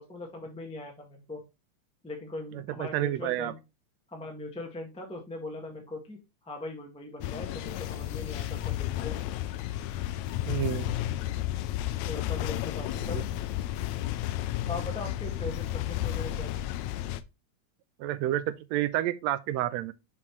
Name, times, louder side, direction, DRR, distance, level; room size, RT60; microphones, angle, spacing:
voice 1, 0.0-1.4 2.0-3.6 4.1-9.2 12.0-13.2 14.7-16.6, left 2 dB, 5° left, 0.5 m, -40 dB
voice 2, 2.5-3.5 10.5-10.9 13.1-13.2 18.0-19.9, right 13 dB, 80° right, 1.8 m, -30 dB
sound 1, 7.2-17.2, left 13 dB, 80° left, 1.8 m, -32 dB
6.2 x 5.7 x 3.0 m
omnidirectional pair, 3.3 m